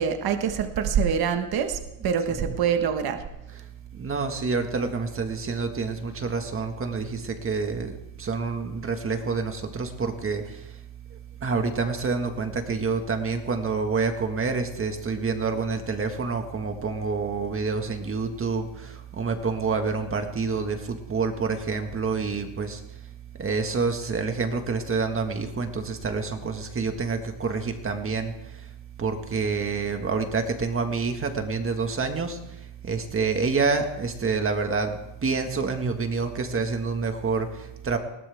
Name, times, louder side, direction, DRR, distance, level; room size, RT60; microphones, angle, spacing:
voice 1, 0.0-3.2, right 7 dB, 50° right, 7 dB, 1.5 m, -25 dB
voice 2, 3.6-10.8 11.1-22.8 23.4-28.7 29.0-38.0, right 4 dB, 25° right, 5 dB, 1.8 m, -28 dB
20.5 x 17.5 x 3.6 m, 0.88 s
cardioid pair, 150°, 48 cm